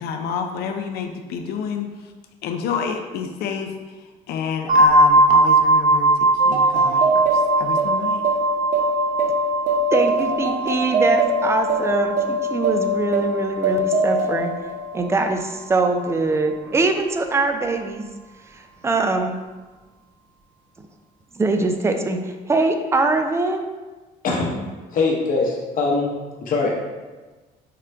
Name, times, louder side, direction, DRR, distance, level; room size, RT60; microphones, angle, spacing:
voice 1, 0.0-2.1 2.4-8.2, left 6 dB, 70° left, 4 dB, 0.4 m, -29 dB
sound 1, 4.7-14.3, right 2 dB, 65° right, 1.4 m, -20 dB
sound 2, 6.4-15.4, right 1 dB, 50° right, 0.7 m, -23 dB
voice 2, 9.9-14.5 14.9-18.0 18.5-19.4 21.4-23.6, right 3 dB, 15° right, 5 dB, 0.4 m, -22 dB
voice 3, 24.2-26.1 26.4-26.7, left 3 dB, 55° left, -1 dB, 0.9 m, -22 dB
3.8 x 2.2 x 4.4 m, 1.3 s
cardioid pair, 110°, 17 cm